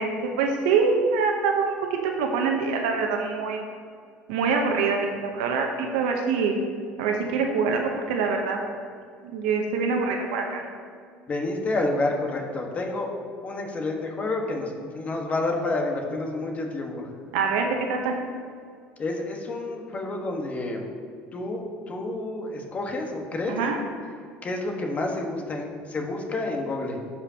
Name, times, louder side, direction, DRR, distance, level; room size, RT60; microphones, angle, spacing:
voice 1, 0.0-3.6 4.3-6.6 7.0-8.6 9.2-10.6 17.3-18.1 23.5-23.8, right 5 dB, 90° right, 2 dB, 0.8 m, -25 dB
voice 2, 11.3-13.1 13.4-17.1 19.0-20.9 21.3-23.6 24.4-27.0, left 2 dB, 35° left, 1 dB, 1.4 m, -29 dB
14.5 x 5.0 x 2.9 m, 2.2 s
supercardioid pair, 105°, 4 cm